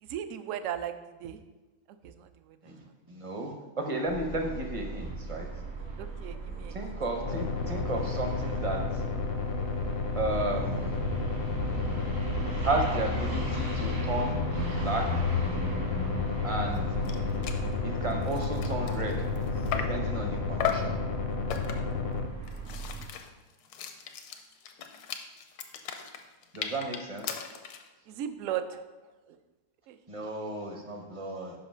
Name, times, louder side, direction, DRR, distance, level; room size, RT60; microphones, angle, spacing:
voice 1, 0.0-1.4 2.0-3.0 6.0-6.9 28.1-28.9 29.3-29.4 29.9-30.0, right 10 dB, 70° right, 10 dB, 0.8 m, -37 dB
voice 2, 2.6-5.5 6.7-9.0 10.2-10.9 12.6-14.3 14.8-15.2 16.4-16.8 17.8-19.2 19.7-21.0 26.5-27.5 30.1-31.5, right 2 dB, 30° right, 2 dB, 0.6 m, -33 dB
sound 1, 4.1-23.0, right 1 dB, 85° right, 2.4 m, -35 dB
sound 2, 7.2-22.3, left 5 dB, 60° left, 0.6 m, -32 dB
sound 3, 16.8-16.9 17.0-17.2 17.4-17.7 18.1-20.1 20.6-21.0 21.5-22.0 22.4-27.9, left 8 dB, 85° left, 1.2 m, -36 dB
5.6 x 5.3 x 5.6 m, 1.2 s
omnidirectional pair, 1.6 m